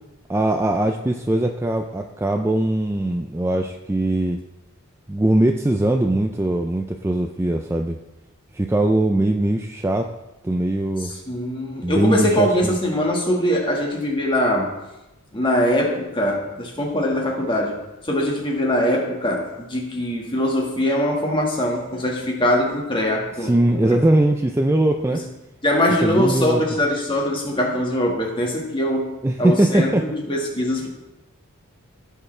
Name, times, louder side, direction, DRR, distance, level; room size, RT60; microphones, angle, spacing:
voice 1, 0.3-4.4 5.1-8.0 8.5-10.1 10.4-11.1 11.8-12.7 23.4-25.2 26.0-26.6 29.2-30.0, right 1 dB, 10° right, 4 dB, 0.4 m, -20 dB
voice 2, 11.0-14.7 15.3-24.0 25.1-25.3 25.6-29.1 29.4-30.9, left 1 dB, 20° left, 0 dB, 1.7 m, -22 dB
15.5 x 6.7 x 3.3 m, 1.0 s
head